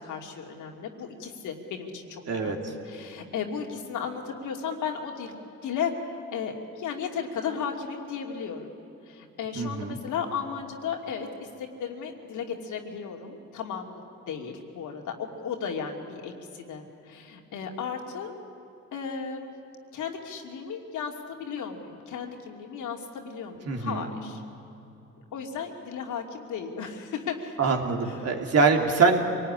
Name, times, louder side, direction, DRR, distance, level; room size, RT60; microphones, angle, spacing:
voice 1, 0.0-8.7 9.1-18.3 18.9-19.5 19.9-24.4 25.3-27.7 28.0-28.3, left 6 dB, 80° left, 2 dB, 2.8 m, -35 dB
voice 2, 2.3-2.7 9.6-10.0 23.7-24.0 27.6-29.2, right 4 dB, 55° right, 3 dB, 3.0 m, -24 dB
26.0 x 18.5 x 10.0 m, 2.9 s
cardioid pair, 90°, 30 cm